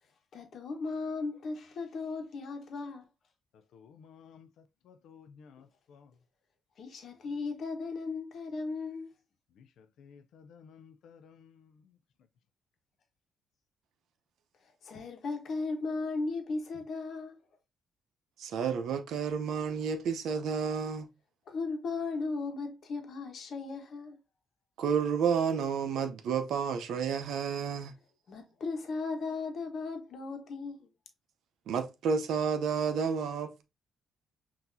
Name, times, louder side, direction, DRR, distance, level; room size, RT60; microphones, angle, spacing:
voice 1, 0.3-3.0 6.8-9.1 14.8-17.4 21.5-24.2 28.3-30.9, left 3 dB, 60° left, 1.1 m, -36 dB
voice 2, 3.7-6.1 9.6-11.9, left 6 dB, 75° left, 0.5 m, -56 dB
voice 3, 18.4-21.1 24.8-27.9 31.7-33.6, right 6 dB, 75° right, 0.8 m, -31 dB
5.9 x 2.8 x 2.7 m
cardioid pair, 90°, 0 cm